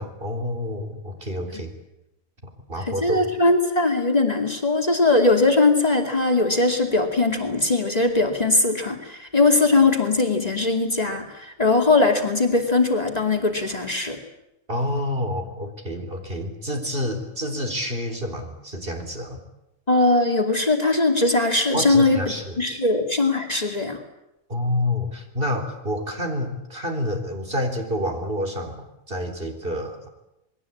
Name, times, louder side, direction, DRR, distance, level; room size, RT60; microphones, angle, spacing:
voice 1, 0.0-1.7 2.4-3.3 14.7-19.4 21.7-22.6 24.5-30.1, left 1 dB, 45° right, 5 dB, 4.3 m, -28 dB
voice 2, 2.9-14.2 19.9-22.2 22.6-24.0, left 2 dB, 30° left, 3 dB, 2.8 m, -20 dB
27.5 x 21.0 x 8.7 m, 0.91 s
omnidirectional pair, 1.4 m